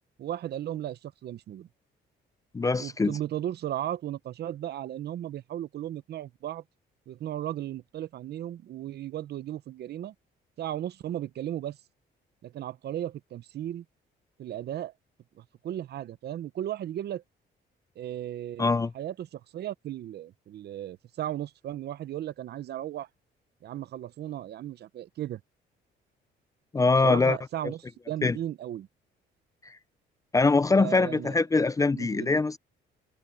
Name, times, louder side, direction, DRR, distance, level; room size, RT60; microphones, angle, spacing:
voice 1, 0.2-1.7 2.8-6.6 7.1-10.1 10.6-11.8 12.4-13.8 14.4-14.9 15.4-17.2 18.0-23.1 23.6-25.4 27.0-28.9 30.7-31.4 31.9-32.4, right 12 dB, 60° right, 0.8 m, -35 dB
voice 2, 2.5-3.2 18.6-18.9 26.7-27.4 28.2-28.4 29.7-29.8 30.3-32.6, left 3 dB, 15° left, 0.5 m, -23 dB
cardioid pair, 125°, 19 cm